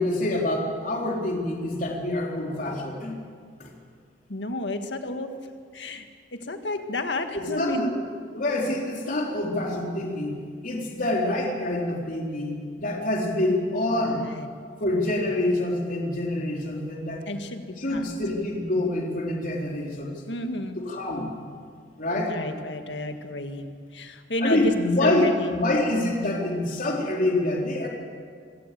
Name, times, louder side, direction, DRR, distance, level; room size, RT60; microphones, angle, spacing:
voice 1, 0.0-3.2 3.6-3.7 7.3-7.9 8.3-10.4 10.6-14.3 14.8-17.2 17.8-20.2 20.8-21.3 22.0-22.4 24.4-27.9, left 1 dB, 50° left, 0 dB, 3.8 m, -26 dB
voice 2, 4.3-5.3 5.7-6.1 6.3-7.9 13.9-14.5 17.3-18.0 20.3-20.8 22.2-23.7 23.9-24.7 25.0-25.6, left 2 dB, 90° left, 6 dB, 1.8 m, -31 dB
25.0 x 17.0 x 7.7 m, 2.1 s
head